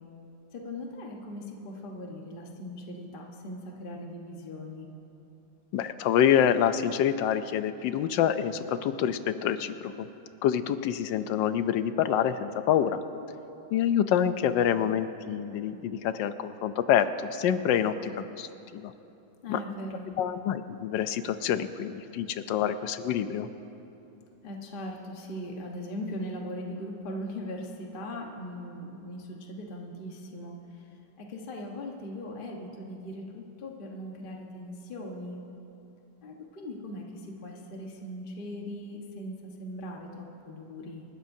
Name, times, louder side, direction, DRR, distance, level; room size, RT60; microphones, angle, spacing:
voice 1, 0.5-4.9 19.4-20.1 24.4-30.9 31.2-35.4 36.2-41.0, left 1 dB, 30° left, 0 dB, 1.2 m, -39 dB
voice 2, 5.7-10.1 10.4-13.0 13.7-18.1 18.4-18.5 18.7-18.9 19.5-19.6 20.2-23.5, left 9 dB, 75° left, 11 dB, 1.3 m, -26 dB
28.5 x 12.0 x 2.7 m, 2.9 s
omnidirectional pair, 2.1 m